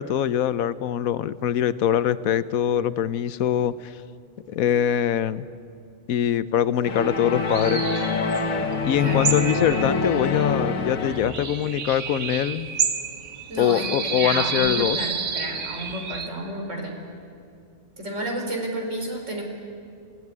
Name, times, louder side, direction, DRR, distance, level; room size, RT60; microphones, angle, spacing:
voice 1, 0.0-3.9 4.5-5.5 6.1-7.9 8.8-12.7 13.6-15.0, left 10 dB, 80° left, 15 dB, 1.2 m, -23 dB
sound 1, 6.8-11.5, left 4 dB, 65° left, 1.7 m, -25 dB
sound 2, 7.4-16.3, right 5 dB, 75° right, 1.7 m, -30 dB
voice 2, 9.0-9.3 13.5-17.0 18.0-19.4, right 1 dB, 60° right, 1 dB, 4.2 m, -31 dB
26.0 x 15.5 x 9.7 m, 2.3 s
omnidirectional pair, 1.5 m